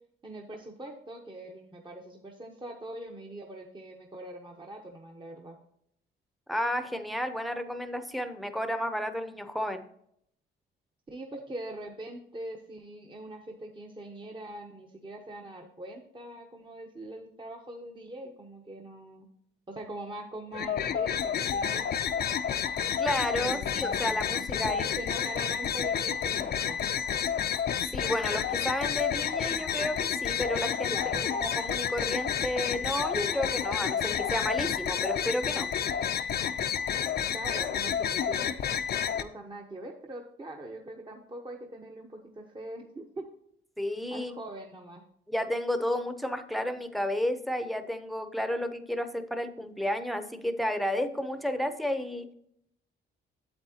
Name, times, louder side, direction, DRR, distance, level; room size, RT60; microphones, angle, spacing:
voice 1, 0.2-5.6 11.1-19.3 19.7-21.8 23.3-26.8 30.9-31.2 37.3-38.5 39.2-43.2 44.1-45.0, right 1 dB, 25° right, 2 dB, 1.0 m, -42 dB
voice 2, 6.5-9.8 23.0-25.0 27.9-30.9 31.3-35.7 43.8-44.3 45.3-52.3, left 1 dB, ahead, 9 dB, 0.8 m, -32 dB
sound 1, 20.5-39.2, left 8 dB, 55° left, 0.5 m, -30 dB
8.7 x 7.8 x 2.9 m, 0.71 s
cardioid pair, 90°, 20 cm